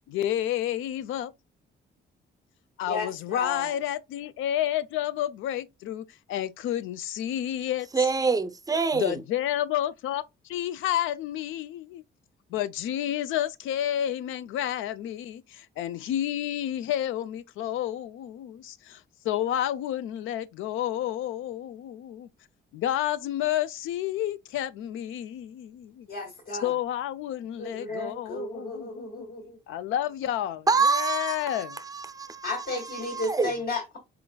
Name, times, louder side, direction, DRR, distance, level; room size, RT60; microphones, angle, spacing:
voice 1, 0.1-1.3 2.8-7.9 8.9-12.0 12.5-22.3 22.7-26.1 26.6-29.3 29.7-31.8, left 11 dB, 85° left, 0.5 m, -30 dB
voice 2, 2.8-3.8 26.1-26.7 27.6-29.6 32.4-34.0, left 2 dB, 55° left, 2.2 m, -34 dB
voice 3, 7.9-9.2 30.7-33.5, right 4 dB, 20° right, 0.5 m, -26 dB
4.4 x 3.8 x 2.2 m
cardioid pair, 90°, 20 cm